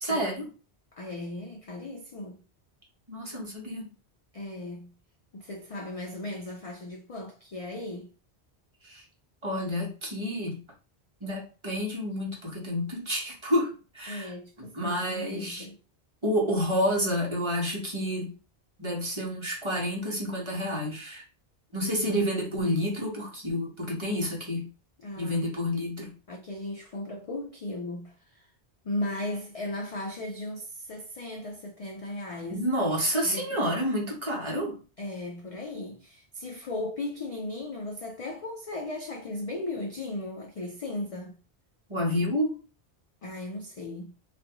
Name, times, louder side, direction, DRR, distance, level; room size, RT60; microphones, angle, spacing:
voice 1, 0.0-0.5 3.1-3.9 8.8-9.0 9.4-10.6 11.2-14.3 14.6-15.7 16.2-18.3 18.8-21.2 21.7-24.7 25.2-26.1 32.5-34.8 41.9-42.6, equal, 30° right, 0.9 m, -29 dB
voice 2, 0.9-2.4 4.3-4.9 5.3-8.1 14.1-15.8 21.8-22.3 25.0-25.6 26.3-28.5 28.8-32.6 33.2-33.6 35.0-41.4 43.2-44.1, left 2 dB, 50° left, 0.4 m, -37 dB
3.2 x 2.4 x 2.9 m
omnidirectional pair, 1.1 m